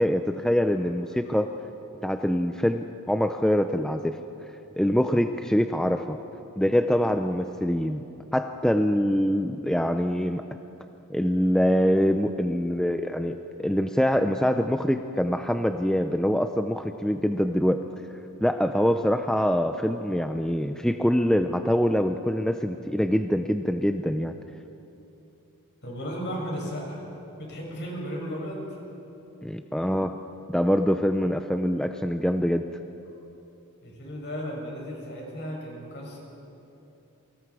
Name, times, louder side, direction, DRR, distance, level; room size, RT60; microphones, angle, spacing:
voice 1, 0.0-1.5 2.0-4.2 4.8-6.2 6.6-8.0 8.3-10.4 11.1-17.8 18.4-24.3 29.4-30.2 30.5-32.6, equal, 5° left, 6 dB, 0.5 m, -24 dB
voice 2, 25.8-27.0 27.4-28.8 33.8-36.2, equal, 50° left, -2 dB, 6.9 m, -35 dB
28.5 x 24.5 x 4.9 m, 2.9 s
head